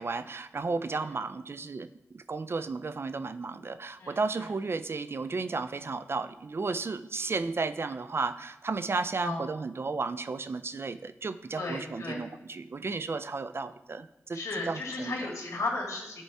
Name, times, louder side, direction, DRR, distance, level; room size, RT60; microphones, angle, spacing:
voice 1, 0.0-1.9 2.1-14.4 14.7-15.2, right 4 dB, 50° right, 12 dB, 0.4 m, -33 dB
voice 2, 11.6-12.2 14.3-16.2, left 2 dB, 70° left, -1 dB, 1.9 m, -34 dB
8.8 x 4.5 x 3.4 m, 0.90 s
cardioid pair, 55°, 5 cm